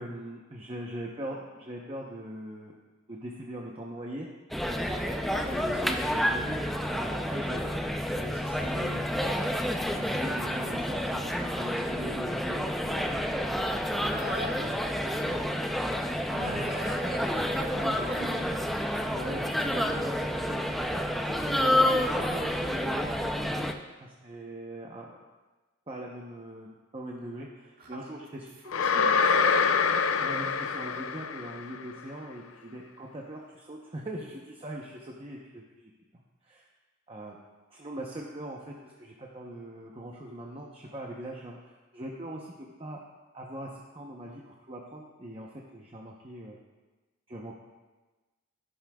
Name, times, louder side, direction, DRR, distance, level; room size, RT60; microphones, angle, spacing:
voice 1, 0.0-2.7 3.1-4.3 4.7-7.8 8.1-9.2 9.9-13.7 14.0-14.7 15.0-16.7 17.8-18.5 19.1-23.7 24.0-25.1 25.9-28.5 30.2-35.9 36.4-36.7 37.1-37.4 37.7-43.0 43.3-46.6 47.3-47.5, right 1 dB, 30° right, -2 dB, 0.8 m, -41 dB
sound 1, 4.5-23.7, equal, ahead, 0.4 m, -29 dB
voice 2, 14.1-14.5 16.3-18.4 27.8-28.0 28.8-29.5 30.1-30.3, right 1 dB, 45° right, -2 dB, 1.9 m, -41 dB
sound 2, 28.7-31.8, left 5 dB, 85° left, 0.5 m, -25 dB
14.0 x 11.0 x 2.3 m, 1.2 s
head